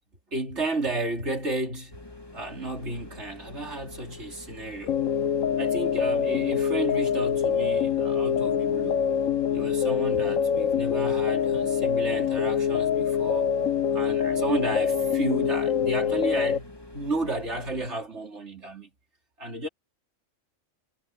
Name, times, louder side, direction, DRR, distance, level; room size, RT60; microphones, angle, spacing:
voice 1, 0.3-2.0 2.3-5.0 5.6-9.0 9.5-13.5 13.9-18.9 19.4-19.7, right 2 dB, 60° right, 4.1 m, -32 dB
sound 1, 1.9-17.9, left 1 dB, 20° left, 3.6 m, -46 dB
sound 2, 4.9-16.6, left 8 dB, 85° left, 1.5 m, -25 dB
omnidirectional pair, 1.3 m